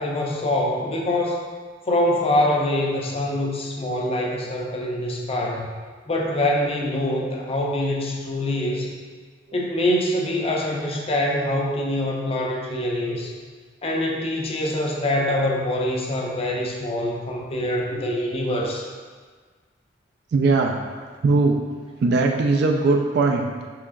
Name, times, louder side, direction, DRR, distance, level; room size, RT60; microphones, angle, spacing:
voice 1, 0.0-1.5 1.9-5.7 6.1-8.9 9.5-13.3 13.8-18.9, left 1 dB, 35° left, -1 dB, 0.5 m, -24 dB
voice 2, 20.3-20.8 21.2-21.6 22.0-23.7, right 3 dB, 65° right, 2 dB, 0.3 m, -19 dB
5.6 x 2.9 x 2.5 m, 1.5 s
head